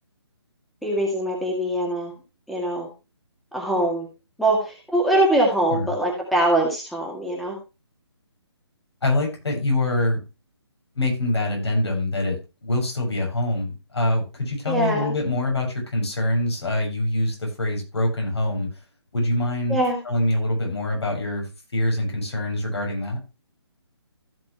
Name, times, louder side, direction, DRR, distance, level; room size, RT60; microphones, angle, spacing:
voice 1, 0.8-2.1 2.5-2.9 3.5-4.1 4.4-7.6 14.7-15.2 19.7-20.0, right 1 dB, ahead, -1 dB, 2.2 m, -22 dB
voice 2, 9.0-10.2 10.9-18.7 19.1-19.8 20.0-21.5 21.7-23.2, left 1 dB, 70° left, 0 dB, 7.5 m, -24 dB
15.5 x 6.8 x 3.2 m, 0.29 s
figure-of-eight pair, 145°, 14 cm